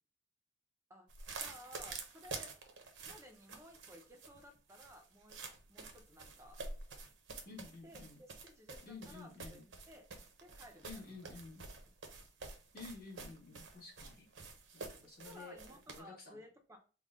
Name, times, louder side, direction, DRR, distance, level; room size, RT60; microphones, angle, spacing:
sound 1, 1.1-16.0, right 4 dB, 80° right, 0.7 m, -49 dB
voice 1, 1.4-2.6 3.1-5.4 5.7-6.6 7.8-10.1 10.4-11.3 15.0-16.8, equal, 15° right, 3 dB, 0.5 m, -57 dB
voice 2, 7.4-8.2 8.8-9.6 10.8-11.7 12.7-14.3 14.7-15.6 15.9-16.4, left 3 dB, 55° left, -2 dB, 1.3 m, -52 dB
3.6 x 2.2 x 3.5 m, 0.36 s
head